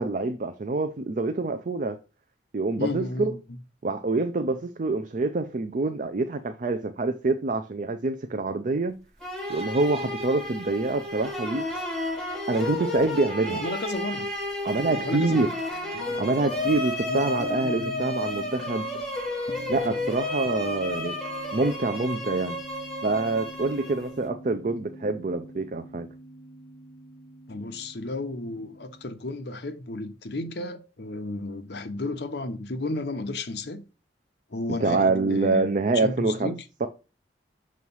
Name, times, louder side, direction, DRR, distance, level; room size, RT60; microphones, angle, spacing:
voice 1, 0.0-2.0 2.5-3.4 3.8-9.0 9.5-11.7 12.5-13.6 14.6-15.5 16.2-19.0 19.7-21.2 21.5-22.6 23.0-26.1 34.8-36.5 36.8-36.9, right 3 dB, 45° right, 0.5 m, -26 dB
voice 2, 2.8-3.6 13.5-14.3 14.9-15.6 15.8-16.3 17.1-18.1 27.5-33.8 34.5-36.6, left 2 dB, 60° left, 0.8 m, -33 dB
sound 1, 9.2-24.3, left 1 dB, ahead, 1.6 m, -32 dB
sound 2, 16.0-29.1, equal, 25° left, 0.8 m, -45 dB
6.8 x 3.2 x 5.4 m
head